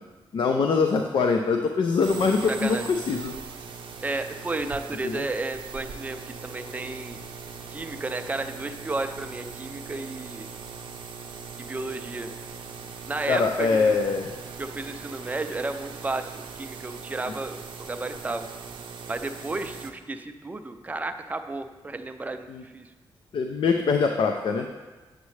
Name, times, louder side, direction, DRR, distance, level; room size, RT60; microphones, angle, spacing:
voice 1, 0.3-3.4 5.0-5.2 13.3-14.3 22.5-22.6 23.3-24.7, left 4 dB, 65° left, 4 dB, 0.5 m, -23 dB
sound 1, 2.0-19.9, right 5 dB, 60° right, 0.7 m, -40 dB
voice 2, 2.5-2.8 4.0-7.2 7.7-10.5 11.6-12.3 13.1-14.0 14.6-18.5 19.1-22.9, right 2 dB, 15° right, 7 dB, 0.4 m, -33 dB
8.1 x 7.2 x 3.2 m, 1.3 s
wide cardioid pair, 145°, 9 cm